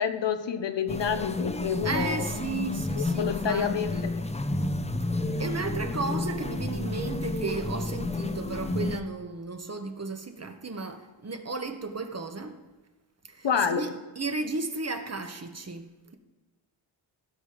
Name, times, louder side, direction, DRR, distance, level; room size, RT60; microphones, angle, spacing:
voice 1, 0.0-2.3 3.0-3.9 13.4-13.8, left 7 dB, 60° left, 1.1 m, -28 dB
sound 1, 0.9-9.0, left 2 dB, 15° left, 0.8 m, -31 dB
voice 2, 1.8-4.1 5.4-12.6 13.3-13.9 14.1-16.1, right 3 dB, 30° right, 1.4 m, -34 dB
15.5 x 5.4 x 5.2 m
supercardioid pair, 50°, 50 cm